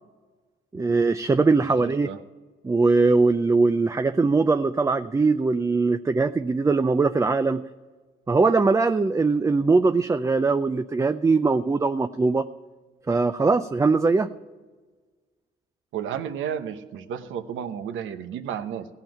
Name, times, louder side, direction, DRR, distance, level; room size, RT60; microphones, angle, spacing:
voice 1, 0.7-2.1 2.6-7.6 8.3-12.5 13.1-14.3, right 3 dB, 15° right, 10 dB, 0.4 m, -21 dB
voice 2, 1.6-2.2 15.9-18.9, right 8 dB, 80° right, 8 dB, 1.0 m, -32 dB
16.0 x 5.7 x 9.0 m, 1.4 s
cardioid pair, 90°, 20 cm